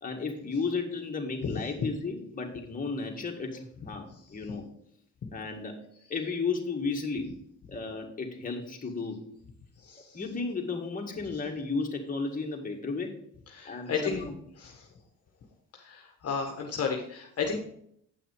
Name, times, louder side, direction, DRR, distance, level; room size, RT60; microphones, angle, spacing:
voice 1, 0.0-4.7 5.3-5.8 6.1-7.3 7.7-9.2 10.1-13.1 13.6-14.3, left 4 dB, 25° left, 1 dB, 1.9 m, -33 dB
voice 2, 9.8-10.2 13.5-14.2 14.6-14.9 15.7-17.6, left 5 dB, 55° left, 2 dB, 1.3 m, -33 dB
8.6 x 5.9 x 4.9 m, 0.69 s
cardioid pair, 90°, 30 cm